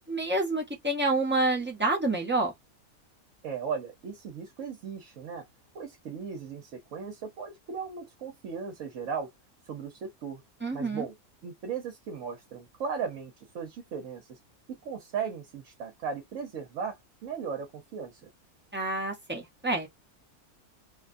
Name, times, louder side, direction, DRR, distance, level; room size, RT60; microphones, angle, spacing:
voice 1, 0.1-2.5 10.6-11.1 18.7-19.9, right 2 dB, 10° right, 0.6 m, -28 dB
voice 2, 3.4-5.5 5.7-9.3 9.7-10.4 10.7-11.1 11.4-14.4 14.7-18.3, right 6 dB, 65° right, 1.0 m, -37 dB
2.7 x 2.2 x 2.5 m
omnidirectional pair, 1.6 m